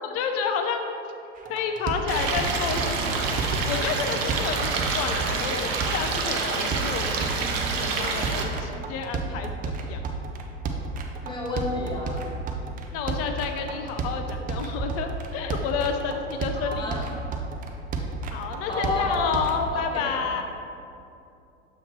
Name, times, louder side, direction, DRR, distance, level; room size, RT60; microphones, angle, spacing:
voice 1, 0.0-0.9 1.5-3.4 3.7-9.6 9.9-10.0 12.9-16.9 18.3-20.4, left 6 dB, 40° left, 5 dB, 0.5 m, -30 dB
sound 1, 1.4-19.6, right 4 dB, 25° right, 0.5 m, -32 dB
Stream, 2.1-8.4, right 4 dB, 60° right, 0.8 m, -27 dB
voice 2, 11.2-12.2 16.5-17.1 18.7-20.1, left 2 dB, 15° left, -4 dB, 1.3 m, -30 dB
7.1 x 3.1 x 4.4 m, 2.6 s
hypercardioid pair, 85°, 36 cm